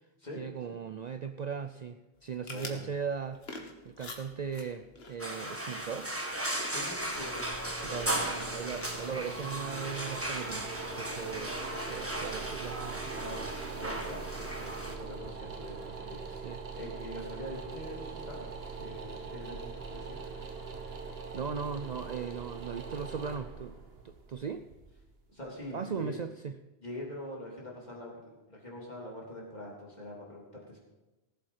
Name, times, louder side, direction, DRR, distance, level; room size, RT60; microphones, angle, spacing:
voice 1, 0.4-3.4 3.8-6.1 7.8-10.7 11.0-11.6 11.9-13.1 16.4-16.6 21.1-23.8 24.0-24.7 25.7-26.5, right 6 dB, 50° right, 9 dB, 0.5 m, -38 dB
sound 1, 2.1-10.0, left 2 dB, 70° left, 1.8 m, -49 dB
voice 2, 2.5-2.8 6.7-7.5 7.8-8.1 13.1-16.5 16.7-18.5 18.8-20.2 25.3-26.1 26.8-30.8, left 1 dB, 40° left, -4 dB, 3.6 m, -44 dB
sound 2, 5.2-15.0, right 1 dB, 15° right, 1.3 m, -36 dB
sound 3, 6.9-25.7, right 4 dB, 70° right, 1.5 m, -42 dB
18.0 x 7.8 x 5.7 m, 1.1 s
omnidirectional pair, 1.1 m